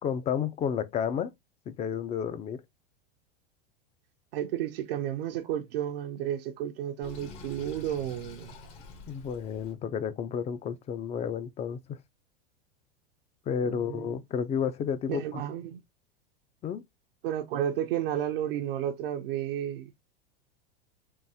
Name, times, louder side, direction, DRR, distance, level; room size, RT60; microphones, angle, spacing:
voice 1, 0.0-1.3 1.7-2.6 9.1-12.0 13.5-15.4 16.6-16.8, left 7 dB, 25° left, 0.4 m, -31 dB
voice 2, 4.3-8.5 13.6-14.2 15.1-15.8 17.2-19.9, right 11 dB, 70° right, 0.6 m, -32 dB
Sink (filling or washing), 7.0-9.8, left 3 dB, 60° left, 1.1 m, -47 dB
3.5 x 2.6 x 2.7 m
hypercardioid pair, 100°, 29 cm